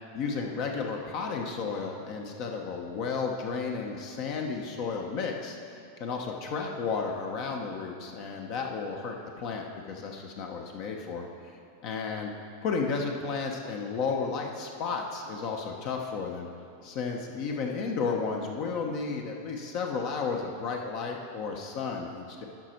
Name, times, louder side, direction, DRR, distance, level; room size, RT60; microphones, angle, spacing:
voice 1, 0.1-5.6 6.0-11.3 11.8-12.3 12.6-16.5 16.8-22.4, left 5 dB, 50° left, 2 dB, 1.0 m, -33 dB
12.0 x 5.2 x 4.5 m, 2.7 s
hypercardioid pair, 125°, 0 cm